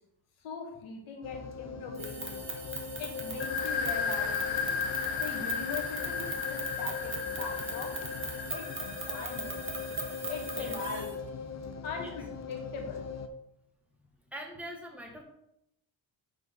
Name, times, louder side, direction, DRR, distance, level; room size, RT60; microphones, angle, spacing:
voice 1, 0.4-2.4 3.0-4.4 5.2-7.9 8.5-9.6 10.3-11.1 11.8-13.1, left 4 dB, 75° left, 2 dB, 1.9 m, -41 dB
sound 1, 1.2-13.3, left 5 dB, 35° left, 0.8 m, -40 dB
sound 2, 1.9-11.1, right 3 dB, 25° right, 1.6 m, -40 dB
sound 3, 3.4-10.9, left 6 dB, 60° left, 1.1 m, -35 dB
voice 2, 10.5-11.0 12.0-12.2 14.3-15.2, equal, 5° right, 0 dB, 1.9 m, -43 dB
11.0 x 3.8 x 4.0 m, 0.81 s
cardioid pair, 85°, 49 cm